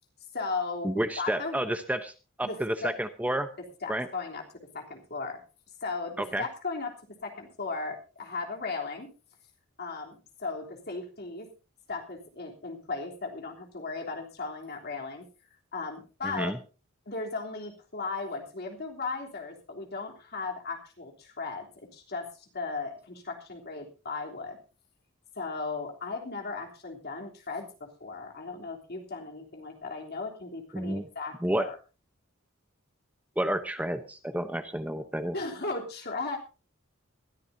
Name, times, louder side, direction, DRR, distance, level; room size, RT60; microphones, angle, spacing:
voice 1, 0.3-1.6 2.4-2.9 3.8-4.4 4.7-5.4 5.8-6.9 7.2-9.1 9.8-11.5 11.9-15.3 15.7-16.5 17.0-21.7 21.9-24.6 25.3-31.8 35.3-36.4, left 3 dB, 50° left, 1 dB, 3.3 m, -36 dB
voice 2, 0.8-2.1 2.4-3.5 3.9-4.1 6.2-6.4 16.2-16.6 30.7-31.0 31.4-31.7 33.4-35.4, right 1 dB, 5° right, 8 dB, 0.8 m, -30 dB
21.5 x 13.5 x 2.7 m, 0.32 s
head